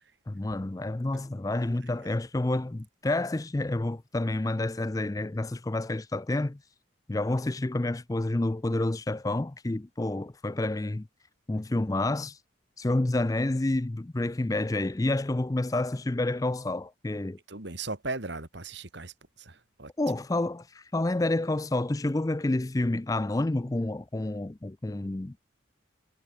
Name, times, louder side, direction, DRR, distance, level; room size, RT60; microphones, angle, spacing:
voice 1, 0.3-6.6 7.1-11.1 11.5-12.4 12.8-17.4 20.0-25.4, left 2 dB, 20° left, 0.4 m, -29 dB
voice 2, 17.5-19.9, right 3 dB, 60° right, 2.4 m, -38 dB
head